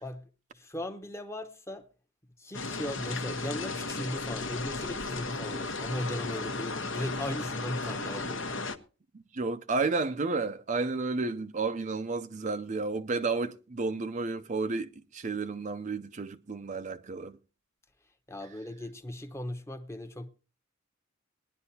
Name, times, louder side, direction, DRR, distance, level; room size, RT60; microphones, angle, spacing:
voice 1, 0.0-1.9 2.4-8.5 18.3-20.3, left 1 dB, 15° left, 0.9 m, -38 dB
sound 1, 2.5-8.8, left 3 dB, 65° left, 1.0 m, -35 dB
voice 2, 9.3-17.4, right 3 dB, 35° right, 0.5 m, -32 dB
19.0 x 10.5 x 2.8 m
head